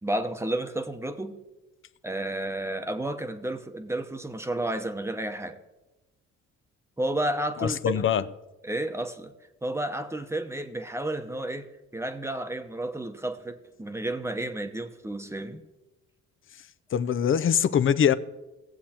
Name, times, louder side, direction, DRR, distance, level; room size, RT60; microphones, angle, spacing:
voice 1, 0.0-1.4 2.0-5.6 7.0-8.1 8.6-9.3 9.6-11.7 11.9-15.6, right 1 dB, 10° right, 0.9 m, -31 dB
voice 2, 7.6-8.2 16.9-18.1, left 8 dB, 45° left, 0.5 m, -23 dB
17.5 x 7.6 x 2.9 m
cardioid pair, 90°, 30 cm